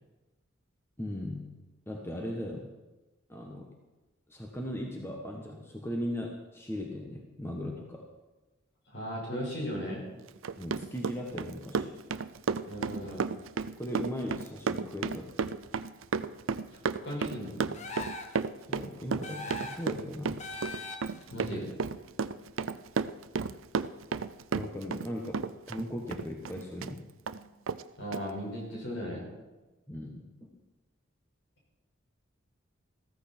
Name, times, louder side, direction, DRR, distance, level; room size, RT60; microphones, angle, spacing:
voice 1, 1.0-1.5 1.9-2.7 3.3-3.7 4.3-8.0 10.6-12.1 13.8-15.5 18.7-20.4 24.5-27.0 29.9-30.5, left 1 dB, 10° left, 0 dB, 1.3 m, -38 dB
voice 2, 8.9-10.0 12.7-13.3 17.0-17.8 21.3-21.7 27.3-27.5 28.0-29.3, equal, 60° left, -2 dB, 5.5 m, -37 dB
Run, 10.3-25.1 25.3-26.9 27.3-27.4 27.7-27.8 28.1-28.2, right 5 dB, 80° right, 0.5 m, -32 dB
sound 1, 17.7-18.4 19.2-19.9 20.4-21.2, left 2 dB, 35° left, 1.3 m, -40 dB
14.5 x 14.0 x 4.4 m, 1.1 s
head